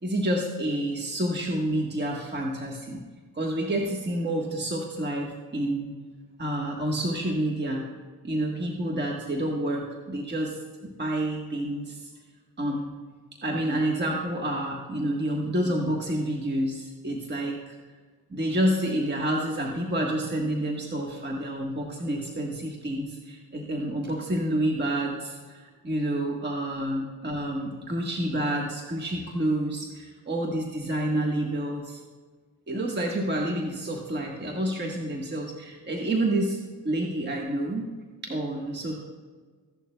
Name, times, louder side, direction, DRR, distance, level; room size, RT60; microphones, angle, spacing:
voice 1, 0.0-3.0 3.3-5.9 6.4-7.9 8.2-12.1 12.6-12.9 13.4-17.8 18.3-32.0 32.7-36.6 36.8-37.9 38.2-38.9, right 1 dB, 25° right, 0 dB, 1.4 m, -29 dB
15.5 x 11.0 x 2.3 m, 1.5 s
supercardioid pair, 60°, 42 cm